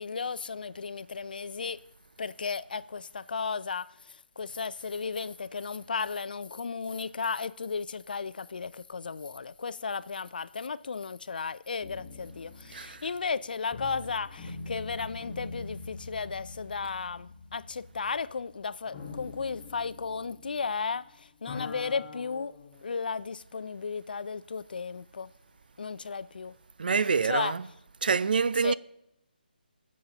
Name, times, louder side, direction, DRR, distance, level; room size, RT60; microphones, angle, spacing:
voice 1, 0.0-1.8 2.2-3.9 4.4-21.0 21.4-22.5 22.8-25.3 25.8-26.5 27.2-27.5 28.6-28.7, left 5 dB, 60° left, 0.4 m, -34 dB
sound 1, 11.8-21.1 21.3-22.8, left 3 dB, 20° left, 1.5 m, -44 dB
voice 2, 26.8-27.6 28.0-28.7, right 5 dB, 60° right, 0.4 m, -26 dB
21.0 x 7.4 x 2.9 m
figure-of-eight pair, 160°, 5 cm